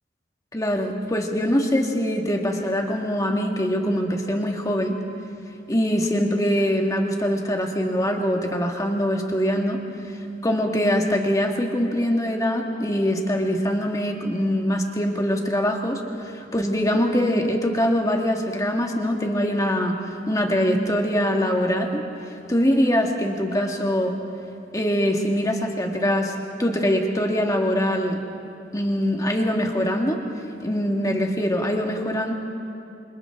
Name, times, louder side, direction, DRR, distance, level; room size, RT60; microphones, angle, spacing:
voice 1, 0.5-5.0 5.7-9.8 10.4-22.0 22.5-24.2 24.7-26.3 26.6-28.2 28.7-30.2 30.6-32.3, equal, 20° left, 2 dB, 1.9 m, -23 dB
28.5 x 25.5 x 3.8 m, 2.8 s
head